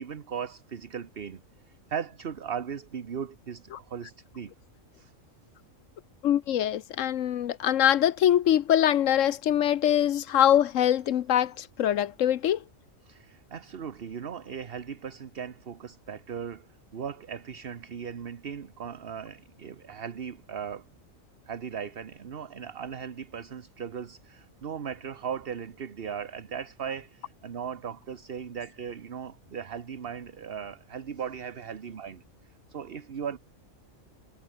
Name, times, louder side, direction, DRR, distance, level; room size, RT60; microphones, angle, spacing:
voice 1, 0.0-1.4 1.7-4.5 4.9-5.1 13.0-16.7 16.9-20.9 21.5-32.2 32.7-33.4, right 7 dB, 45° right, 1.2 m, -38 dB
voice 2, 6.2-12.6, left 10 dB, 70° left, 1.1 m, -23 dB
omnidirectional pair, 1.4 m